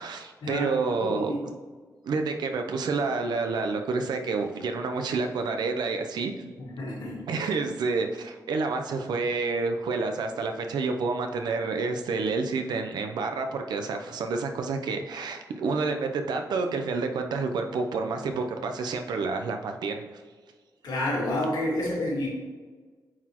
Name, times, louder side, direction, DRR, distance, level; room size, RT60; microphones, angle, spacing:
voice 1, 0.0-1.3 2.0-6.3 7.3-20.0, right 4 dB, 85° right, 5 dB, 0.6 m, -29 dB
voice 2, 1.0-1.4 6.6-7.2 20.8-22.3, left 1 dB, 80° left, -4 dB, 1.9 m, -29 dB
8.7 x 4.1 x 2.9 m, 1.4 s
wide cardioid pair, 145°, 7 cm